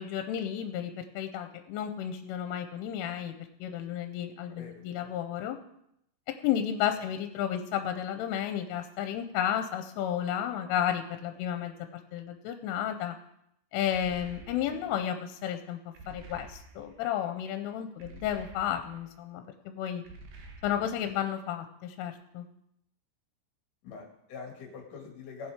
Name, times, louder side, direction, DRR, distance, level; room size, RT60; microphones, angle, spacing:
voice 1, 0.0-3.3 3.6-5.6 6.4-11.7 12.1-13.2 13.7-15.8 16.1-20.0 20.6-22.5, left 10 dB, 85° left, 7 dB, 3.2 m, -32 dB
voice 2, 4.5-5.2 6.8-7.0 14.7-14.8 23.8-25.5, left 5 dB, 50° left, 1 dB, 3.1 m, -45 dB
sound 1, 13.9-15.0 15.9-17.0 18.0-19.1 20.0-21.1, right 2 dB, 65° right, 2.4 m, -49 dB
18.5 x 7.3 x 5.0 m, 0.78 s
omnidirectional pair, 5.7 m